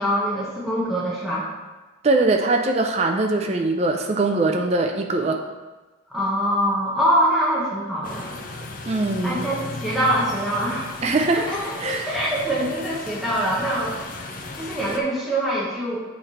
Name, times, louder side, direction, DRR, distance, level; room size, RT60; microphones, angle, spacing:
voice 1, 0.0-1.5 6.1-8.3 9.2-10.9 11.3-11.7 12.1-13.9 14.6-16.0, equal, ahead, -8 dB, 1.1 m, -24 dB
voice 2, 2.0-5.4 8.9-9.5 11.0-11.5 11.8-12.2, right 2 dB, 30° right, 3 dB, 0.4 m, -22 dB
sound 1, 8.0-15.0, left 2 dB, 45° left, 0.5 m, -36 dB
7.9 x 3.3 x 4.3 m, 1.2 s
head